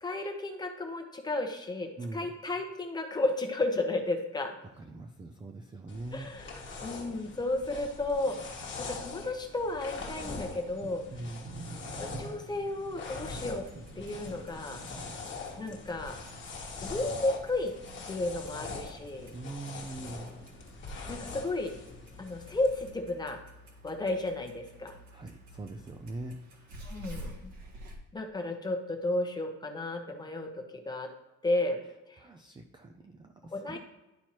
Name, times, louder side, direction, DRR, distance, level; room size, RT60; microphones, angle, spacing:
voice 1, 0.0-4.5 6.1-11.0 12.0-13.7 14.0-14.8 15.6-16.1 16.8-17.7 18.1-19.3 21.1-21.7 22.2-23.4 23.8-24.9 26.8-27.5 28.1-31.1 31.4-31.8 32.1-32.2 33.5-33.8, left 2 dB, 15° left, 3 dB, 0.8 m, -33 dB
Thunder, 4.6-4.8 5.7-5.8 6.4-6.5 6.9-20.6, right 3 dB, 40° right, 0.8 m, -51 dB
voice 2, 4.8-6.3 11.1-11.4 19.3-20.3 25.1-26.3 32.2-33.8, right 2 dB, 15° right, 4 dB, 0.3 m, -42 dB
sound 1, 5.9-22.9, left 4 dB, 40° left, 1.3 m, -43 dB
Clock, 12.9-28.0, equal, 75° right, 1.8 m, -51 dB
11.0 x 4.4 x 3.0 m, 1.0 s
cardioid pair, 175°, 29 cm